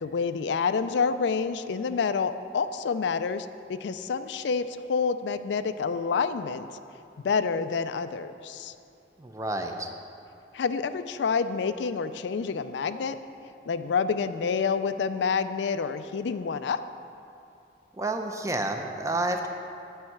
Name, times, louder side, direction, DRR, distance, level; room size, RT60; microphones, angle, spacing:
voice 1, 0.0-6.7 7.2-8.7 10.5-13.2 13.7-16.8, left 5 dB, 85° left, 11 dB, 0.4 m, -28 dB
voice 2, 9.2-9.9 18.0-19.5, right 2 dB, 20° right, 5 dB, 0.6 m, -30 dB
8.8 x 5.5 x 7.7 m, 2.6 s
head